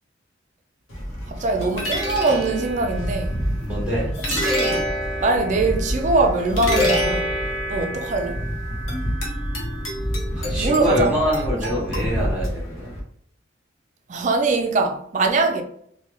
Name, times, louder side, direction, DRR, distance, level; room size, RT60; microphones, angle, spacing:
sound 1, 0.9-13.0, equal, 85° left, 0.9 m, -26 dB
voice 1, 1.3-3.4 4.3-4.9 5.2-7.4 7.7-8.4 10.4-11.3 14.1-15.6, right 3 dB, 35° right, 0.4 m, -22 dB
voice 2, 3.6-4.1 10.3-12.9, equal, 5° right, 0.9 m, -25 dB
3.2 x 2.2 x 2.7 m
head